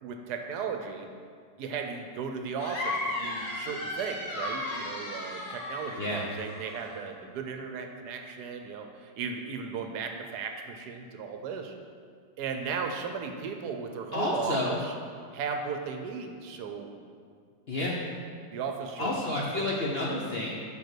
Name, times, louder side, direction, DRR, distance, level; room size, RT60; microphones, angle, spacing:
voice 1, 0.0-1.1 1.6-11.7 12.4-14.9 15.3-16.9 18.5-19.7, right 5 dB, 75° right, 5 dB, 1.1 m, -36 dB
sound 1, 2.6-7.0, left 2 dB, 80° left, 2.0 m, -35 dB
voice 2, 14.1-14.8 17.7-18.0 19.0-20.6, left 1 dB, 55° left, -4 dB, 0.7 m, -30 dB
5.3 x 5.2 x 6.0 m, 2.1 s
omnidirectional pair, 1.9 m